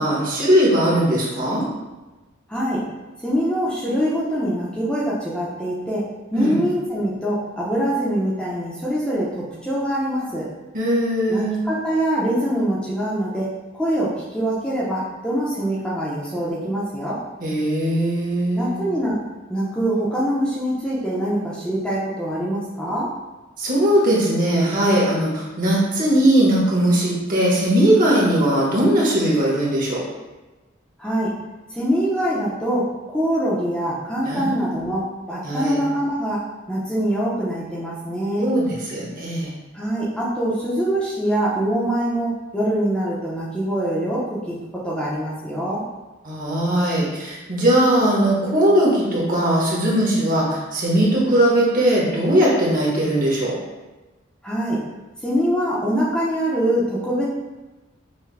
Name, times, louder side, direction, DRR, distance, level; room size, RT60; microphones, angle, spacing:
voice 1, 0.0-1.6 6.3-6.6 10.7-11.6 17.4-18.8 23.6-30.0 34.2-34.8 35.4-35.8 38.4-39.5 46.2-53.6, right 1 dB, 45° right, -4 dB, 1.1 m, -19 dB
voice 2, 2.5-2.8 3.2-6.0 6.3-10.4 11.3-13.5 13.7-17.2 18.5-19.2 19.5-23.1 31.0-31.3 31.7-35.0 35.3-36.4 36.7-38.5 39.7-44.6 44.8-45.8 54.4-54.8 55.2-57.3, right 1 dB, 5° left, -7 dB, 0.7 m, -24 dB
5.7 x 2.2 x 3.3 m, 1.1 s
head